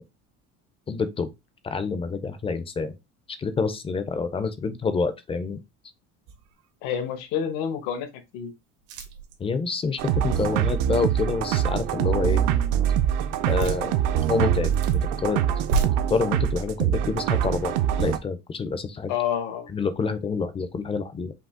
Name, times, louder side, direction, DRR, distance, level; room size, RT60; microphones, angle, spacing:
voice 1, 0.9-1.3 1.6-2.9 3.4-5.6 9.4-12.4 13.5-13.9 14.2-15.4 16.1-19.1 19.7-21.3, left 4 dB, 15° left, 0.4 m, -27 dB
sound 1, 6.3-6.7 7.2-7.3 8.8-9.4 13.5-13.8 14.5-15.0 15.5-15.9, right 5 dB, 80° right, 1.4 m, -29 dB
voice 2, 6.8-8.1 8.3-8.5 19.1-19.7, left 8 dB, 80° left, 1.2 m, -28 dB
sound 2, 10.0-18.2, right 10 dB, 65° right, 0.6 m, -24 dB
5.2 x 2.7 x 3.6 m
cardioid pair, 150°, 36 cm